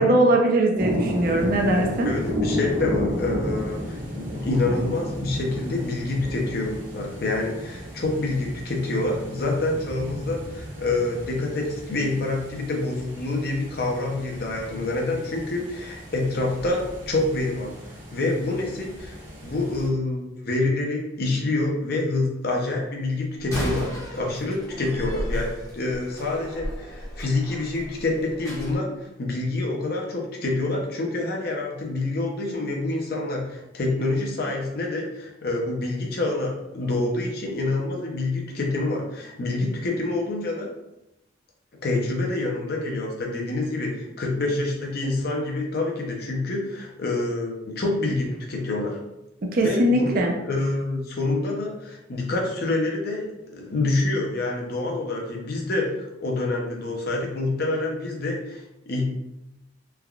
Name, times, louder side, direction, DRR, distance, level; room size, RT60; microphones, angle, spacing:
voice 1, 0.0-2.1 49.5-50.3, right 1 dB, 50° right, 1 dB, 0.5 m, -20 dB
sound 1, 0.7-19.9, left 1 dB, 80° right, 1.2 m, -33 dB
voice 2, 2.0-17.7 18.1-19.2 19.4-40.7 41.8-49.0 49.6-50.2 50.4-59.1, left 2 dB, 55° left, -1 dB, 0.6 m, -27 dB
Slam, 23.4-28.8, equal, 15° left, 0.7 m, -34 dB
3.3 x 2.2 x 2.3 m, 0.88 s
head